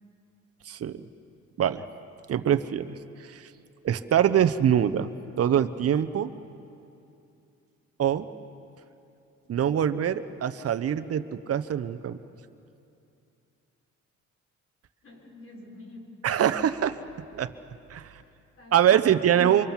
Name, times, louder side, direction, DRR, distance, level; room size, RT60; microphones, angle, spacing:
voice 1, 0.6-1.0 1.6-1.9 2.3-3.5 3.8-5.1 5.4-6.3 8.0-8.3 9.5-12.2 16.2-17.0 17.3-17.5 17.9-18.2 18.7-19.7, right 9 dB, 50° right, 10 dB, 1.0 m, -24 dB
voice 2, 15.0-16.3 18.2-19.7, left 2 dB, 50° left, -1 dB, 6.1 m, -49 dB
25.5 x 23.5 x 7.4 m, 2.7 s
cardioid pair, 90°, 30 cm